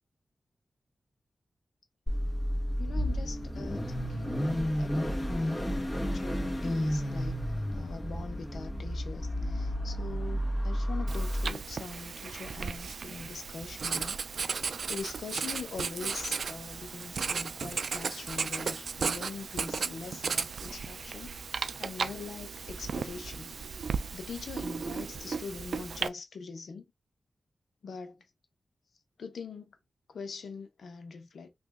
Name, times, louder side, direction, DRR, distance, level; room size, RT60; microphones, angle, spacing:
Car / Idling / Accelerating revving vroom, 2.1-11.5, equal, 20° left, 1.2 m, -31 dB
voice 1, 2.8-5.7 6.0-7.4 7.7-14.2 14.5-23.7 24.1-26.9 27.8-28.2 29.2-29.7 30.1-31.5, left 5 dB, 85° left, 0.8 m, -43 dB
Writing, 11.1-26.1, right 5 dB, 75° right, 0.3 m, -35 dB
3.0 x 2.6 x 3.5 m
wide cardioid pair, 80°, 0 cm